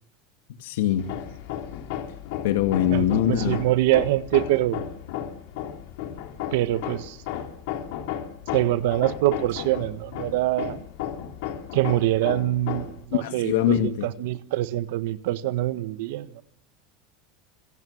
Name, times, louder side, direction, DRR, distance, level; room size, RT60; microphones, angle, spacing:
voice 1, 0.6-1.1 2.4-3.6 13.2-14.1, left 11 dB, 90° left, 2.4 m, -23 dB
Hammer, 1.0-13.0, left 10 dB, 65° left, 3.5 m, -34 dB
voice 2, 2.9-4.9 6.5-7.2 8.5-10.8 11.7-16.4, right 15 dB, 65° right, 1.4 m, -24 dB
26.5 x 25.5 x 7.3 m
supercardioid pair, 175°, 0 cm